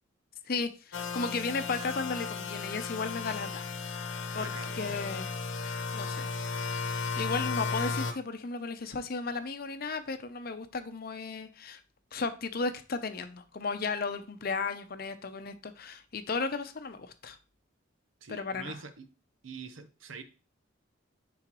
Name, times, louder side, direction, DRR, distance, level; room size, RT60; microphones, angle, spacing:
voice 1, 0.5-4.0 4.3-5.3 5.9-6.3 6.9-11.8 12.1-17.4 18.3-18.8, left 4 dB, 50° left, 10 dB, 0.6 m, -35 dB
sound 1, 0.9-8.1, left 4 dB, 85° left, 0.9 m, -35 dB
voice 2, 4.3-5.0 18.2-19.1 19.4-20.2, right 4 dB, 85° right, 9 dB, 0.9 m, -45 dB
9.8 x 3.9 x 3.0 m, 0.33 s
head